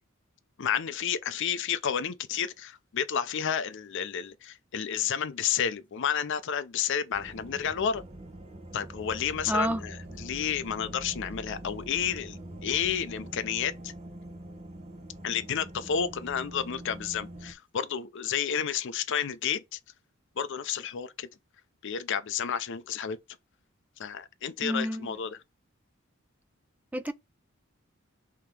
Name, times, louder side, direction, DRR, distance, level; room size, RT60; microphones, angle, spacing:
voice 1, 0.6-8.0 8.7-13.9 15.2-19.8 20.4-21.3 21.8-23.2 24.0-25.4, left 8 dB, 65° left, 0.5 m, -31 dB
sound 1, 7.1-17.5, right 1 dB, 30° right, 0.8 m, -44 dB
voice 2, 9.5-9.8 24.6-25.1 26.9-27.1, equal, 10° right, 0.3 m, -29 dB
3.6 x 2.9 x 4.7 m
head